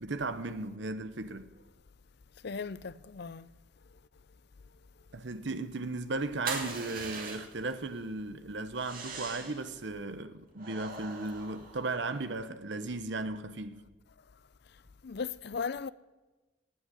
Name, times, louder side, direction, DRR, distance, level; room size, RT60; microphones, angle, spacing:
voice 1, 0.0-1.5 5.1-13.8, right 3 dB, 65° right, 1.0 m, -36 dB
voice 2, 2.4-3.5 15.0-15.9, left 5 dB, 55° left, 0.5 m, -37 dB
sound 1, 6.4-7.7 8.7-9.7 10.6-12.2, right 4 dB, 45° right, 2.6 m, -41 dB
18.5 x 6.4 x 9.9 m
head